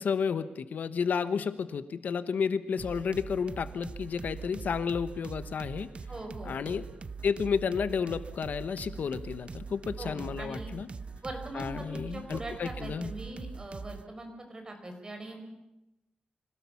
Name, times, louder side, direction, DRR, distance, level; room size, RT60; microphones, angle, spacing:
voice 1, 0.0-5.9 6.4-6.9 7.2-10.9 11.5-13.1, left 6 dB, 70° left, 13 dB, 1.0 m, -31 dB
sound 1, 2.8-14.1, right 4 dB, 40° right, 0.8 m, -42 dB
voice 2, 6.1-6.6 10.0-10.7 11.2-15.4, right 1 dB, 25° right, 4 dB, 5.1 m, -41 dB
25.5 x 17.0 x 7.1 m, 0.93 s
wide cardioid pair, 120°, 3 cm